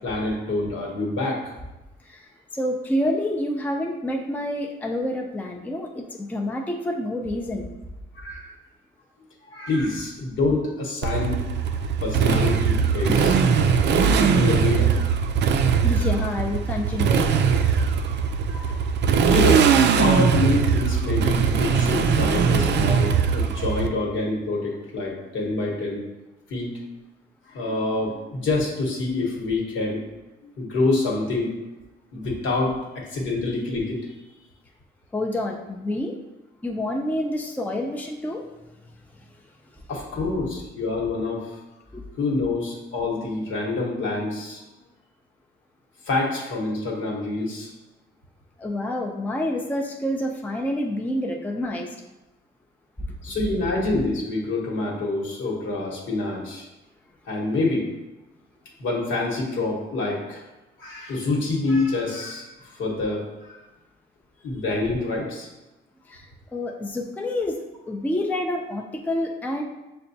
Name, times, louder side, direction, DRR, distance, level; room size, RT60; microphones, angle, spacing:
voice 1, 0.0-1.4 8.1-8.5 9.5-11.7 12.0-13.3 14.1-15.0 18.5-26.0 26.5-26.7 27.5-30.0 30.4-31.5 32.1-34.1 39.9-41.6 42.2-44.6 46.0-47.7 53.2-56.6 57.3-57.9 58.8-60.4 60.8-63.3 64.4-65.5, left 2 dB, 75° left, -2 dB, 1.2 m, -26 dB
voice 2, 2.0-7.7 13.1-13.2 15.8-17.6 35.1-36.1 36.6-38.5 41.9-42.0 48.6-52.0 53.0-53.1 66.1-66.3 66.5-69.6, left 1 dB, 10° left, 1 dB, 0.4 m, -28 dB
Motorcycle, 11.0-23.9, right 6 dB, 60° right, 0.4 m, -20 dB
6.6 x 2.2 x 2.7 m, 1.0 s
cardioid pair, 90°, 20 cm